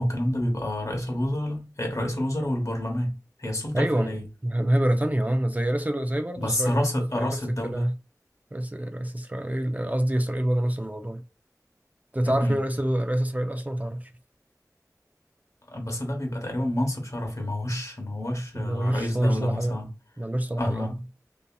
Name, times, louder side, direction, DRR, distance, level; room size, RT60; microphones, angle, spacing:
voice 1, 0.0-4.2 6.4-7.9 12.2-12.6 15.7-19.9 20.6-21.0, left 1 dB, 55° left, 0.9 m, -29 dB
voice 2, 3.7-4.2 4.4-6.8 7.2-7.9 8.5-11.2 12.1-14.1 18.5-19.8 20.2-20.9, right 1 dB, 25° right, 0.4 m, -26 dB
2.7 x 2.6 x 2.2 m
wide cardioid pair, 45°, 6 cm